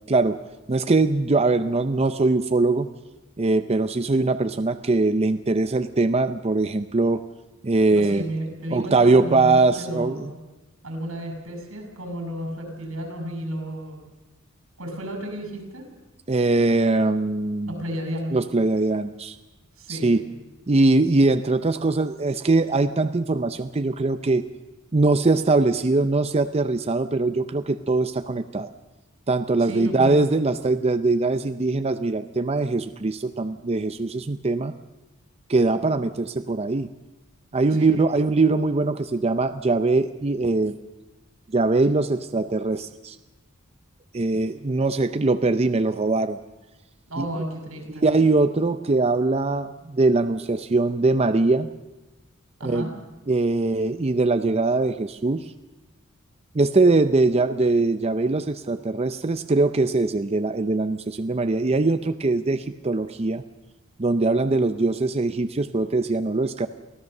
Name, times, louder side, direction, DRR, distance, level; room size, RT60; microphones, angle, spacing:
voice 1, 0.1-0.4 0.7-2.9 3.4-7.2 7.6-8.2 8.7-10.3 16.3-17.7 18.3-19.4 19.9-20.2 20.7-24.4 24.9-28.7 29.3-34.7 35.5-36.9 37.5-40.8 41.5-43.2 44.1-46.4 47.2-47.3 48.0-51.7 52.6-52.9 53.3-55.4 56.5-63.4 64.0-66.7, right 3 dB, 30° right, 10 dB, 0.6 m, -22 dB
voice 2, 7.9-10.4 10.8-14.0 14.8-15.9 17.7-18.4 19.8-20.2 29.6-30.5 37.7-38.1 47.1-48.1 52.6-52.9, equal, 90° right, 4 dB, 6.0 m, -33 dB
24.0 x 16.5 x 6.6 m, 1.1 s
head